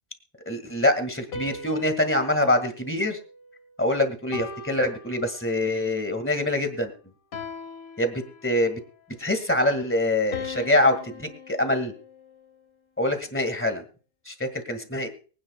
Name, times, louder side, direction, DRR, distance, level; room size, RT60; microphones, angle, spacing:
voice 1, 0.5-3.2 3.8-6.9 8.0-8.8 9.2-11.9 13.0-13.8 14.3-15.1, left 1 dB, 10° left, 7 dB, 1.7 m, -25 dB
sound 1, 1.3-3.7 4.3-5.8 7.3-8.8 10.3-12.6, left 4 dB, 75° left, 1.7 m, -40 dB
24.0 x 9.5 x 2.2 m, 0.39 s
omnidirectional pair, 1.5 m